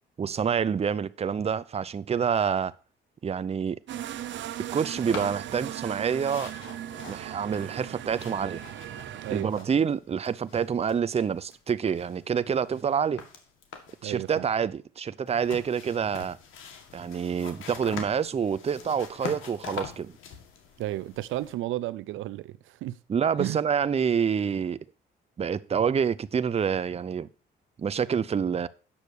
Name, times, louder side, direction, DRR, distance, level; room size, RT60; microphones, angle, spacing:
voice 1, 0.2-2.7 3.2-3.8 4.7-6.5 7.1-8.6 9.3-13.2 14.0-16.4 16.9-20.1 23.1-24.8 25.4-27.3 27.8-28.7, right 7 dB, 30° right, 0.6 m, -27 dB
sound 1, 3.9-9.4, right 11 dB, 70° right, 0.8 m, -38 dB
sound 2, 4.9-5.9 6.2-9.9 10.2-11.6 11.9-14.1 15.3-21.5, left 7 dB, 85° left, 1.9 m, -44 dB
voice 2, 9.2-9.7 14.0-14.4 20.8-23.0 23.4-23.6, right 15 dB, 85° right, 0.5 m, -33 dB
8.6 x 6.7 x 6.4 m
cardioid pair, 90°, 20 cm